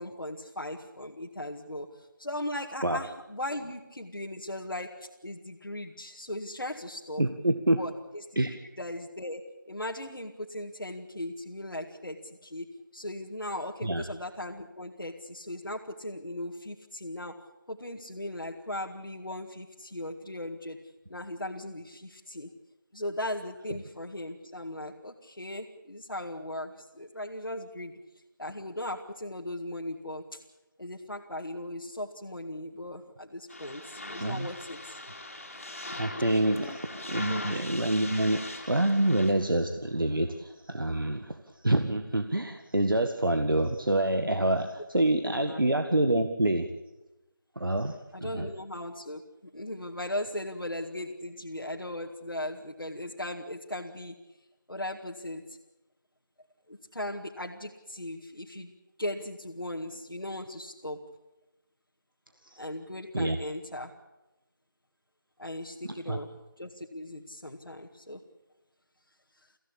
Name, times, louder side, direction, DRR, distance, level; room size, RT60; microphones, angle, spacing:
voice 1, 0.0-7.2 7.8-8.3 8.8-9.4 9.7-17.4 17.7-20.8 21.1-22.5 22.9-27.9 28.4-30.4 30.8-35.0 36.4-36.8 37.3-37.5 45.2-45.6 48.1-49.2 49.5-54.1 54.7-55.6 56.7-58.7 59.0-61.0 62.6-63.9 65.4-66.3 66.6-68.2, left 1 dB, 90° left, -1 dB, 2.1 m, -38 dB
voice 2, 7.2-7.8 8.4-8.5 13.8-14.0 34.2-34.5 35.9-41.4 41.6-46.7 47.6-48.0 48.2-48.5 62.5-62.6 63.1-63.4 65.8-66.2, right 1 dB, 75° right, 6 dB, 1.8 m, -27 dB
sound 1, 33.5-39.3, left 2 dB, 40° left, 3.0 m, -41 dB
23.5 x 15.5 x 8.6 m, 1.0 s
figure-of-eight pair, 175°, 11 cm